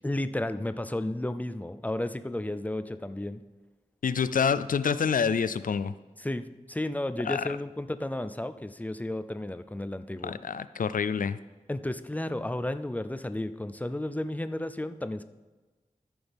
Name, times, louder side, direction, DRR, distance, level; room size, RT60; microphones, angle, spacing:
voice 1, 0.0-3.4 6.2-10.4 11.7-15.2, left 1 dB, 10° left, 11 dB, 0.5 m, -33 dB
voice 2, 4.0-5.9 7.2-7.5 10.2-11.4, left 6 dB, 85° left, 14 dB, 0.4 m, -27 dB
13.5 x 6.2 x 3.5 m, 1.2 s
wide cardioid pair, 65°, 14 cm